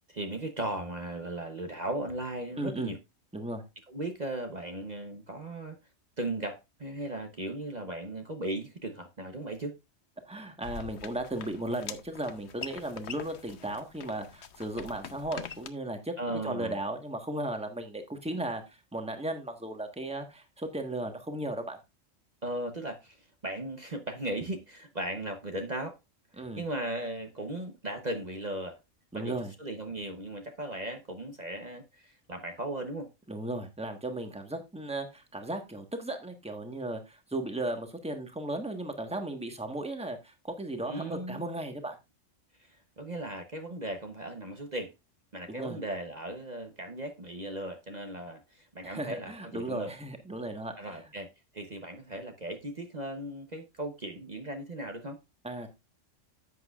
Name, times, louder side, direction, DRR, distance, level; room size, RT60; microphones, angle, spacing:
voice 1, 0.1-3.0 3.9-5.8 6.2-9.7 16.2-16.8 22.4-26.0 26.3-28.8 29.1-33.1 40.9-41.5 42.6-44.9 45.3-49.9 50.8-55.2, right 1 dB, 35° right, 1.0 m, -37 dB
voice 2, 2.6-2.9 3.3-3.6 10.3-16.1 16.4-18.6 18.9-21.8 26.4-26.7 29.1-29.5 33.3-42.0 45.5-45.8 48.8-51.0 55.4-55.7, right 1 dB, 5° right, 1.4 m, -36 dB
sound 1, 10.6-15.7, left 8 dB, 65° left, 1.0 m, -44 dB
11.0 x 8.2 x 2.4 m
omnidirectional pair, 1.3 m